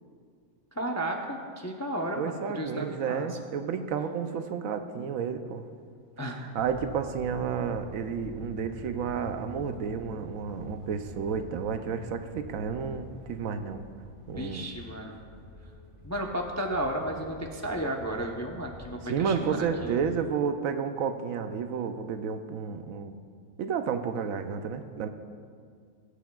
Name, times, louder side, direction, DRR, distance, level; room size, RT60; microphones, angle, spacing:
voice 1, 0.7-3.4 6.2-6.6 14.4-15.2 16.0-20.0, right 1 dB, 20° left, 1 dB, 0.4 m, -33 dB
voice 2, 2.2-5.7 6.5-13.9 14.3-14.7 19.1-23.1 23.6-25.1, right 6 dB, 75° right, 9 dB, 1.0 m, -31 dB
sound 1, 6.5-20.1, left 1 dB, 50° left, 2.2 m, -46 dB
21.0 x 8.1 x 2.3 m, 2.1 s
omnidirectional pair, 1.4 m